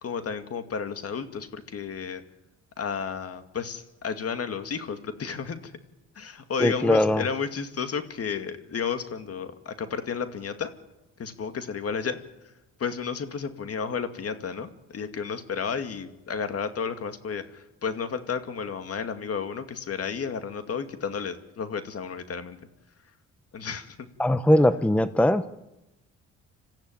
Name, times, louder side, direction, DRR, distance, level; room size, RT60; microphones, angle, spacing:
voice 1, 0.0-2.2 2.8-5.7 6.2-10.7 11.2-12.2 12.8-22.6 23.5-24.1, left 6 dB, 50° left, 9 dB, 2.3 m, -32 dB
voice 2, 6.6-7.2 24.2-25.4, left 1 dB, 5° left, 13 dB, 0.8 m, -20 dB
26.5 x 14.5 x 9.2 m, 0.95 s
cardioid pair, 90°, 30 cm